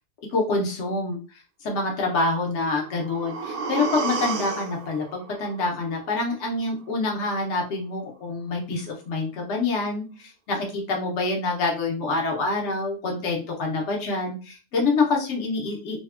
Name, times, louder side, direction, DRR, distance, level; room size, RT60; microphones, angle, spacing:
voice 1, 0.3-16.0, left 3 dB, 85° left, 0 dB, 1.0 m, -26 dB
sound 1, 2.6-6.6 6.9-7.0, right 4 dB, 60° right, 0.6 m, -32 dB
3.3 x 2.1 x 2.3 m, 0.35 s
omnidirectional pair, 1.2 m